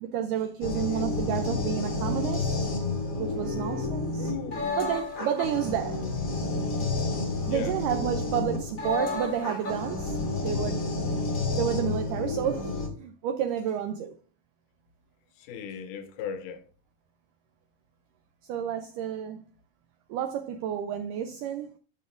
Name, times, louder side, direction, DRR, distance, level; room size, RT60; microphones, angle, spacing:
voice 1, 0.0-2.7 3.2-4.3 4.8-6.0 6.8-7.0 7.5-10.2 10.4-10.9 11.5-14.2 18.5-19.4 20.1-21.7, right 9 dB, 80° right, 2.0 m, -31 dB
sound 1, 0.6-12.9, left 3 dB, 55° left, 0.9 m, -30 dB
voice 2, 0.7-1.2 4.2-4.8 7.4-7.8 15.4-16.6, left 7 dB, 75° left, 2.1 m, -37 dB
12.5 x 6.4 x 2.5 m
omnidirectional pair, 4.1 m